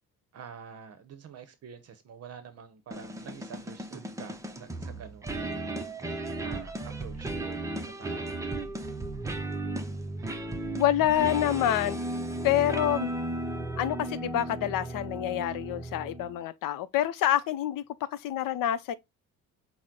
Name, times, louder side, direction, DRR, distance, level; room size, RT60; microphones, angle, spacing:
voice 1, 0.3-5.7 6.4-7.5 7.8-8.3, right 7 dB, 45° right, 0.7 m, -47 dB
sound 1, 2.9-16.4, right 2 dB, 10° right, 0.5 m, -35 dB
voice 2, 10.7-12.0 12.4-13.1 13.8-18.9, left 12 dB, 70° left, 0.6 m, -27 dB
5.9 x 2.1 x 3.7 m
cardioid pair, 135°, 35 cm